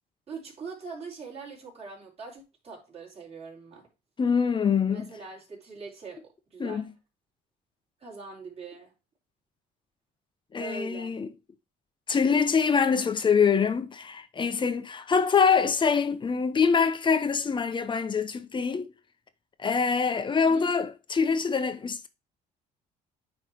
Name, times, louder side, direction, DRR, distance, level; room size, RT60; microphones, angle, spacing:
voice 1, 0.3-3.9 4.9-6.2 6.5-6.8 8.0-8.9 10.6-11.2 20.4-20.7, right 4 dB, 35° right, 3.9 m, -42 dB
voice 2, 4.2-5.1 6.6-6.8 10.5-11.3 12.1-18.9 19.6-22.1, left 6 dB, 30° left, 0.9 m, -24 dB
9.2 x 3.2 x 4.5 m
cardioid pair, 110°, 17 cm